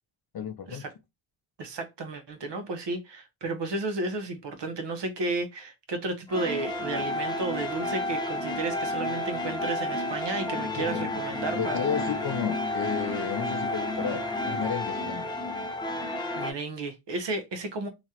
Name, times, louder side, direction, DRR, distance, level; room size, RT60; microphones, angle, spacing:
voice 1, 0.3-0.8 10.8-11.0 11.6-15.3, left 8 dB, 50° left, 0.6 m, -32 dB
voice 2, 1.6-11.8 16.0-17.9, right 2 dB, 65° right, 0.9 m, -33 dB
sound 1, 6.3-16.5, left 1 dB, 10° left, 0.7 m, -31 dB
2.9 x 2.4 x 2.8 m
cardioid pair, 60°, 47 cm